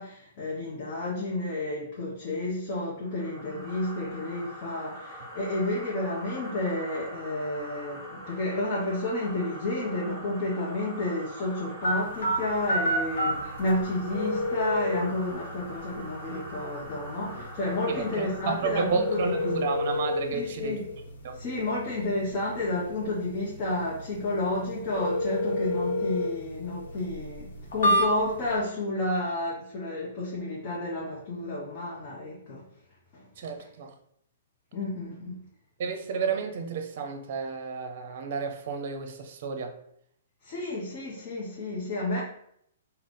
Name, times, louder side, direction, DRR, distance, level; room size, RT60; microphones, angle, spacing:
voice 1, 0.0-19.5 20.3-20.9 21.3-32.6 33.1-33.2 34.7-35.4 40.4-42.2, left 2 dB, 40° left, -5 dB, 0.9 m, -31 dB
sound 1, 3.0-20.0, equal, 5° left, 1.3 m, -43 dB
sound 2, 11.8-28.6, left 1 dB, 70° left, 1.0 m, -31 dB
voice 2, 18.5-20.8 21.2-21.4 33.4-33.9 35.8-39.7, right 5 dB, 55° right, 6 dB, 0.6 m, -31 dB
3.6 x 2.3 x 3.4 m, 0.70 s
hypercardioid pair, 125°, 0 cm